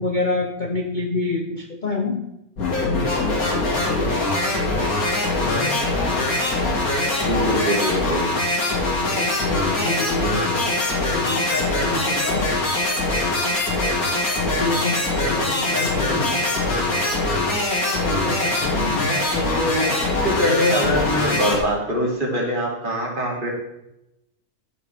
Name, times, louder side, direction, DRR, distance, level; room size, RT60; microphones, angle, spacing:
voice 1, 0.0-2.2 5.4-5.8 9.1-10.8 11.1-12.5 14.4-16.4 18.0-20.3, left 3 dB, 40° left, 2 dB, 0.9 m, -27 dB
sound 1, 2.6-21.6, left 2 dB, 70° left, 2.7 m, -22 dB
voice 2, 7.3-8.3 19.7-19.9 20.2-23.5, equal, 35° right, -3 dB, 2.9 m, -23 dB
15.0 x 6.4 x 3.5 m, 0.86 s
omnidirectional pair, 1.6 m